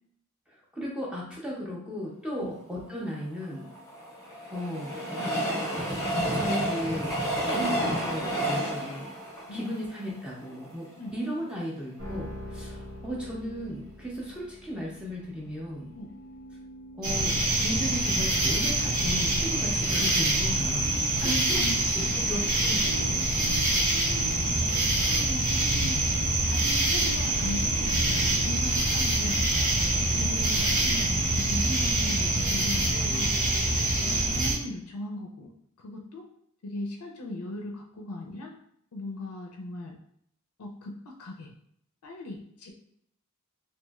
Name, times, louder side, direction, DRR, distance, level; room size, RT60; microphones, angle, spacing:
voice 1, 0.5-3.7 4.5-5.0 6.3-7.2 7.4-9.1 9.5-10.9 11.1-15.9 17.0-17.3 17.6-21.6 21.9-23.5, equal, 5° right, -4 dB, 0.5 m, -35 dB
Train, 3.4-10.7 11.2-11.3 11.5-11.6, equal, 15° left, 0.8 m, -30 dB
sound 1, 12.0-24.3, equal, 85° right, 0.9 m, -47 dB
sound 2, 17.0-34.5, right 2 dB, 60° right, 0.9 m, -25 dB
voice 2, 21.2-21.8 22.0-22.5 24.9-26.0 26.5-29.4 29.9-33.3 34.0-36.3 36.6-38.5 38.9-40.0 40.6-41.5 42.0-42.7, left 1 dB, 80° left, 2 dB, 0.4 m, -38 dB
2.9 x 2.6 x 2.3 m, 0.70 s
head